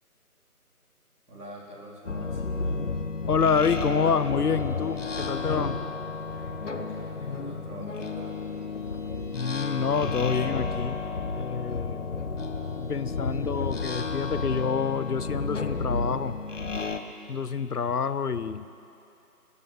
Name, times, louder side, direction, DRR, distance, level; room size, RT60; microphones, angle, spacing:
voice 1, 1.3-2.4 6.2-8.3, right 1 dB, 85° right, -3 dB, 3.7 m, -45 dB
sound 1, 2.1-17.0, left 4 dB, 55° left, 1.0 m, -32 dB
voice 2, 3.3-5.8 9.3-11.0 11.4-12.3 12.7-16.4 17.3-18.6, left 6 dB, 80° left, 14 dB, 0.8 m, -27 dB
28.0 x 14.0 x 3.4 m, 2.6 s
figure-of-eight pair, 170°, 45 cm